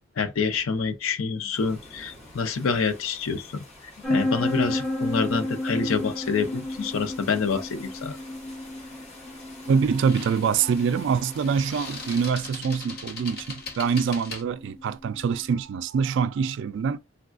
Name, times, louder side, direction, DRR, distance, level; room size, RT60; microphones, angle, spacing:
voice 1, 0.2-3.6 4.1-8.2, left 5 dB, 75° left, 0.5 m, -27 dB
sound 1, 1.5-12.3, left 2 dB, 30° left, 1.1 m, -48 dB
sound 2, 4.0-15.5, left 1 dB, 5° left, 0.8 m, -32 dB
sound 3, 8.1-8.3 9.8-14.4, left 3 dB, 50° left, 0.8 m, -40 dB
voice 2, 9.7-17.0, right 6 dB, 60° right, 0.3 m, -25 dB
3.4 x 2.3 x 2.4 m
head